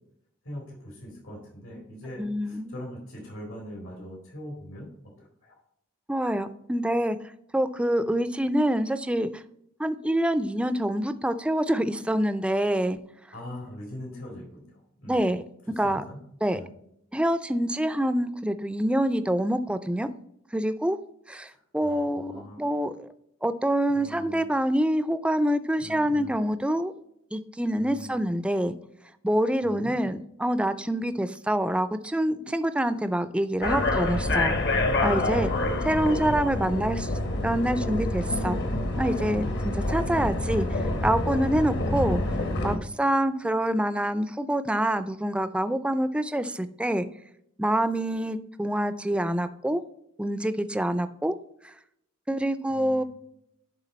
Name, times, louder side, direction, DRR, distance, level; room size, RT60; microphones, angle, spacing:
voice 1, 0.4-4.9 5.2-5.6 13.3-15.3 15.7-16.2 16.5-16.7 21.5-22.6 23.9-24.4 25.8-26.4 27.8-28.3 29.6-29.9 36.0-36.3 36.6-36.7 37.1-37.2 52.7-53.1, equal, 85° left, -2 dB, 2.8 m, -42 dB
voice 2, 2.2-2.8 6.1-7.2 7.5-9.4 9.8-13.0 15.1-15.4 15.8-16.0 16.4-16.6 17.1-20.1 20.5-21.0 21.3-23.1 23.4-26.9 27.3-28.8 29.2-34.5 35.0-35.5 35.8-37.1 37.4-38.6 39.0-42.2 42.6-47.1 47.6-49.8 50.2-51.4 52.3-53.0, right 1 dB, 5° right, 12 dB, 0.3 m, -26 dB
sound 1, 33.6-42.8, left 2 dB, 55° left, 1.0 m, -27 dB
10.5 x 3.8 x 4.1 m, 0.75 s
head